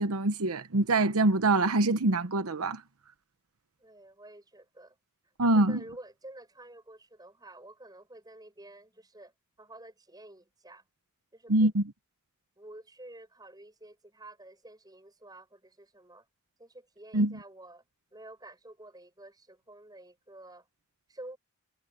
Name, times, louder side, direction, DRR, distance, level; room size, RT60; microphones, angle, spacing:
voice 1, 0.0-2.8 5.4-5.8 11.5-11.8 17.1-17.3, right 2 dB, 80° right, 1.0 m, -24 dB
voice 2, 3.8-5.0 5.4-9.3 9.6-10.8 11.3-11.7 12.6-16.3 16.6-17.8 18.1-20.7 21.1-21.4, right 1 dB, 20° right, 7.2 m, -50 dB
head